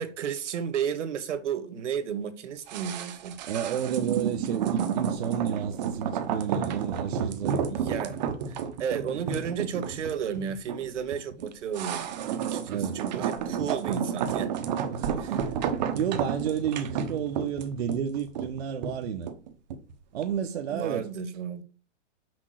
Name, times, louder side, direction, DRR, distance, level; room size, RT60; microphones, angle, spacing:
voice 1, 0.0-3.4 7.7-8.2 8.5-12.1 12.4-14.5 20.7-21.6, right 7 dB, 75° right, 1.6 m, -33 dB
sound 1, 2.7-19.9 20.2-20.3, right 7 dB, 35° right, 1.0 m, -31 dB
voice 2, 3.4-7.6 12.7-13.0 14.9-15.5 15.9-19.3 20.1-21.1, right 8 dB, 60° right, 1.0 m, -31 dB
6.3 x 5.2 x 6.5 m
hypercardioid pair, 170°, 36 cm